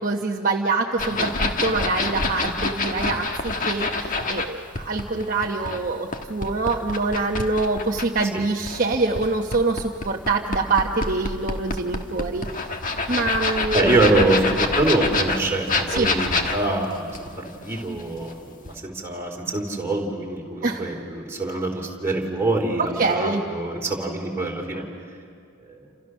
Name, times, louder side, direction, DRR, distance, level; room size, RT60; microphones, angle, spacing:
voice 1, 0.0-12.5 13.1-13.9 15.9-16.1 20.6-20.8 22.8-23.4, right 3 dB, 35° right, 0 dB, 1.0 m, -25 dB
sound 1, 1.0-4.5 4.8-8.3 8.7-18.3 18.7-18.8, left 3 dB, 35° left, 1.5 m, -26 dB
voice 2, 13.7-24.8 25.7-25.8, right 2 dB, 10° right, -1 dB, 3.4 m, -25 dB
29.5 x 27.5 x 6.3 m, 2.3 s
head